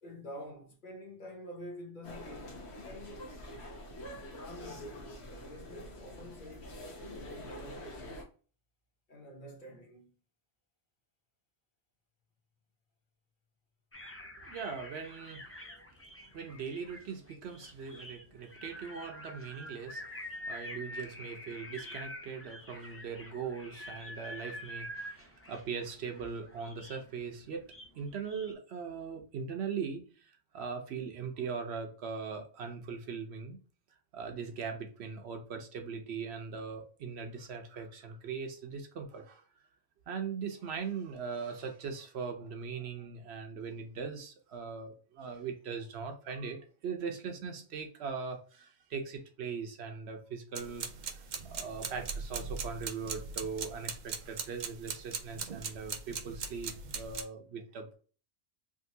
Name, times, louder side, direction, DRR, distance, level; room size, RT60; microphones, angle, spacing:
voice 1, 0.0-3.3 4.4-6.8 7.2-8.3 9.1-10.1 15.6-15.8, left 1 dB, 50° left, 1.0 m, -48 dB
sound 1, 2.0-8.2, left 1 dB, 80° left, 1.2 m, -46 dB
sound 2, 13.9-28.5, left 1 dB, 20° left, 0.3 m, -47 dB
voice 2, 14.4-15.4 16.3-27.7 27.9-33.6 34.1-39.4 40.1-50.8 51.1-58.0, right 5 dB, 80° right, 1.0 m, -40 dB
sound 3, 50.5-57.2, right 5 dB, 55° right, 0.5 m, -40 dB
3.6 x 2.6 x 2.7 m
omnidirectional pair, 1.1 m